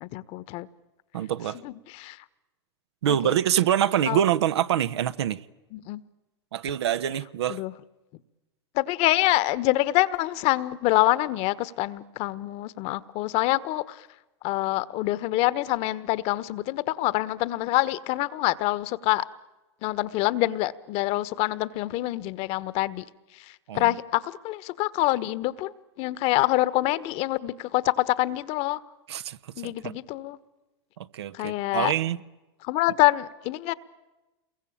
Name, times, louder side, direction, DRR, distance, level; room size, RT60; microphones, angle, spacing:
voice 1, 0.0-0.7 1.5-2.2 3.1-3.3 4.1-4.2 5.7-6.0 7.5-7.7 8.7-14.1 14.4-19.3 19.8-23.1 23.3-28.8 29.6-30.4 31.3-31.9 32.6-33.7, left 17 dB, 50° left, 1.3 m, -26 dB
voice 2, 1.1-1.6 3.0-5.4 6.5-7.6 23.7-23.9 29.1-29.4 29.6-30.0 31.0-32.2, right 10 dB, 75° right, 1.2 m, -25 dB
28.5 x 22.5 x 8.8 m
hypercardioid pair, 100°, 14 cm